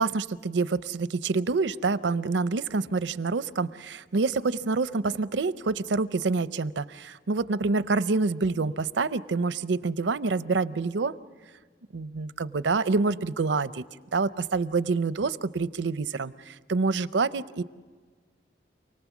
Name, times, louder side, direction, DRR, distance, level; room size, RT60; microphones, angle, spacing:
voice 1, 0.0-11.1 11.9-13.8 14.1-17.6, right 4 dB, 85° right, 14 dB, 0.6 m, -27 dB
28.0 x 19.0 x 7.2 m, 1.5 s
head